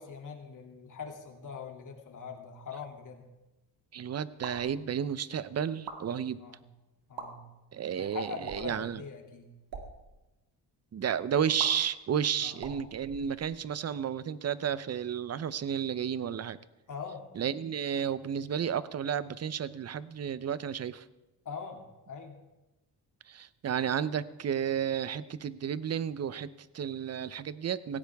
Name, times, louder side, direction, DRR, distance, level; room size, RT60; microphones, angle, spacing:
voice 1, 0.0-3.2 6.4-6.6 7.1-7.5 8.0-9.5 12.4-12.6 16.9-17.2 21.4-21.8 22.1-22.4, left 6 dB, 50° left, 2 dB, 2.8 m, -42 dB
voice 2, 3.9-6.4 7.7-9.0 10.9-16.6 17.3-21.0 23.3-28.0, right 8 dB, 40° right, 16 dB, 0.7 m, -32 dB
sound 1, 4.4-4.7 5.7-6.0 7.0-7.3 8.4-8.8 9.6-9.9 11.6-11.7 12.5-13.7, right 5 dB, 65° right, 2.5 m, -43 dB
17.5 x 15.5 x 3.5 m, 1.0 s
cardioid pair, 100°, 40 cm